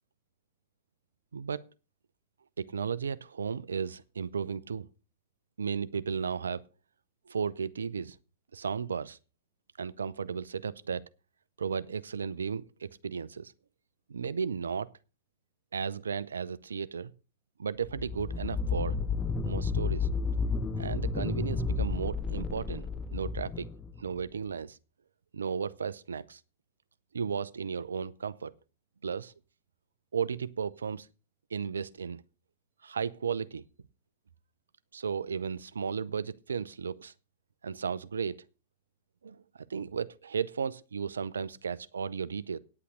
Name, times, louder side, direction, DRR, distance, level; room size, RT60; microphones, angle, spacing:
voice 1, 1.3-1.7 2.6-4.9 5.6-6.6 7.3-8.2 8.5-9.2 9.8-11.1 11.6-13.5 14.1-14.9 15.7-17.1 17.6-19.0 19.5-20.1 20.8-23.7 24.0-24.8 25.3-26.4 27.1-28.5 29.0-29.3 30.1-31.1 31.5-32.2 32.8-33.6 34.9-37.1 37.6-38.4 39.2-39.4 39.7-42.6, right 6 dB, 80° right, 0.7 m, -34 dB
sound 1, 17.8-24.3, left 4 dB, 20° left, 1.0 m, -32 dB
9.7 x 8.4 x 6.6 m
figure-of-eight pair, 105°, 0 cm